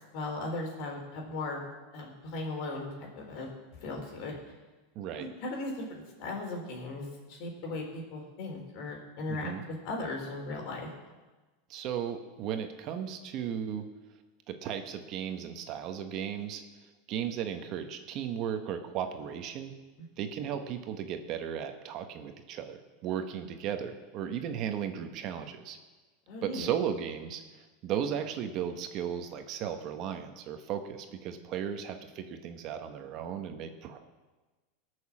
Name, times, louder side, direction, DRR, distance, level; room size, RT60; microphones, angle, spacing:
voice 1, 0.1-1.6 1.9-3.5 3.8-4.3 5.2-10.9 26.3-26.7, left 2 dB, 55° left, 1 dB, 4.1 m, -37 dB
voice 2, 4.9-5.3 9.3-9.6 11.7-13.9 14.5-16.6 17.1-19.7 20.2-25.8 26.4-34.0, right 8 dB, 45° right, 6 dB, 1.3 m, -35 dB
18.0 x 6.5 x 7.4 m, 1.2 s
supercardioid pair, 130°, 0 cm